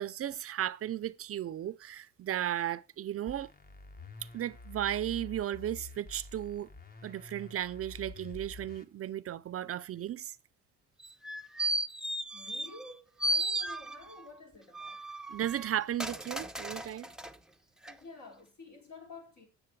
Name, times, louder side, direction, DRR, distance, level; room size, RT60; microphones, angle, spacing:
voice 1, 0.0-3.5 4.3-6.7 7.0-10.3 15.3-17.1, right 11 dB, 50° right, 0.5 m, -35 dB
sound 1, 3.3-8.8, left 2 dB, 30° left, 1.1 m, -48 dB
sound 2, 11.0-12.9 13.2-14.2 14.7-17.3 17.8-17.9, right 1 dB, ahead, 0.6 m, -35 dB
voice 2, 12.3-15.1 17.8-19.5, left 3 dB, 70° left, 4.6 m, -50 dB
8.8 x 6.5 x 4.7 m
cardioid pair, 90°, 30 cm